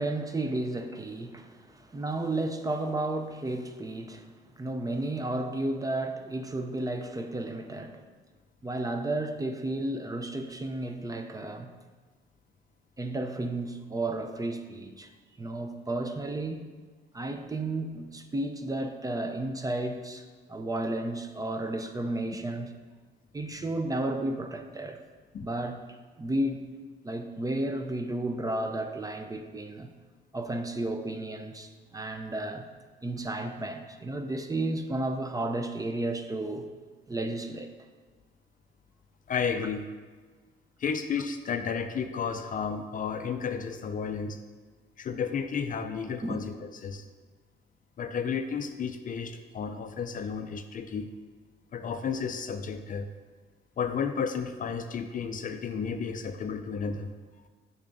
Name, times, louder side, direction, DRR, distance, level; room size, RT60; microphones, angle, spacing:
voice 1, 0.0-8.0 8.6-11.7 13.0-15.1 15.4-16.7 17.1-22.7 23.3-25.0 25.4-26.6 27.0-29.9 30.3-32.7 33.0-36.7 37.1-37.7 46.2-46.4, right 2 dB, 20° right, 6 dB, 0.5 m, -33 dB
voice 2, 39.3-39.8 40.8-44.4 45.0-47.0 48.0-51.1 51.7-53.1 53.8-57.1, left 6 dB, 45° left, 8 dB, 0.4 m, -32 dB
7.0 x 5.6 x 2.6 m, 1.4 s
cardioid pair, 90°, 20 cm